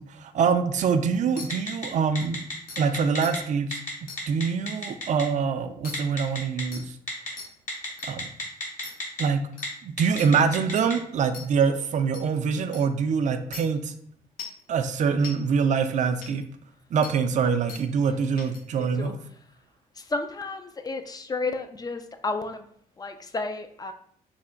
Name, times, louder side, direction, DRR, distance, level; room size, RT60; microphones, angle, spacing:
voice 1, 0.0-2.4 2.8-3.8 4.3-6.9 8.0-8.2 9.2-9.4 9.8-13.9 14.7-16.4 16.9-19.2, right 6 dB, 55° right, 8 dB, 0.4 m, -24 dB
sound 1, 1.4-1.5 2.2-2.3 2.7-2.8 3.2-3.3 4.1-4.2 5.8-5.9 6.7-6.8 7.4-7.5 8.0-8.1 8.8-8.9 9.6-9.7 10.2-10.3 10.8-10.9 11.3-11.5 12.1-12.2 12.7-12.8 13.5-13.6 14.4-14.6 15.2-15.3 16.2-16.3 17.0-17.1 17.7-17.8 18.4-18.6, left 4 dB, 70° left, 0.7 m, -39 dB
Telephone, 1.5-1.9 2.1-3.4 3.7-3.9 4.2-5.2 5.9-6.6 7.1-7.3 7.7-9.2 9.5-9.7 10.0-10.9, left 2 dB, 55° left, 1.3 m, -32 dB
voice 2, 18.8-19.1 20.0-22.7 23.0-23.9, left 3 dB, 25° left, 7 dB, 0.4 m, -32 dB
3.2 x 2.1 x 3.7 m, 0.64 s
cardioid pair, 70°, 15 cm